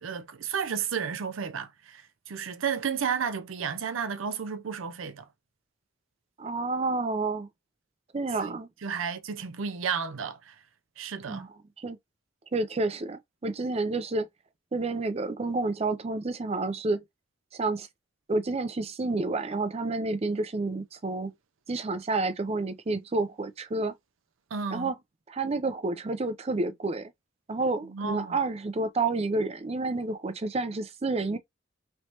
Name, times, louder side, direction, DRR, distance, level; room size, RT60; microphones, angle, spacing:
voice 1, 0.0-5.3 8.4-10.6 11.0-11.5 24.5-24.9 27.9-28.4, right 6 dB, 90° right, 0.5 m, -32 dB
voice 2, 6.4-7.5 8.1-8.7 11.3-11.5 11.8-12.0 12.5-14.3 14.7-17.0 17.5-17.9 18.3-21.3 21.7-23.9 24.7-25.0 25.3-27.1 27.5-31.4, right 3 dB, 30° right, 0.4 m, -29 dB
3.2 x 3.0 x 2.8 m
head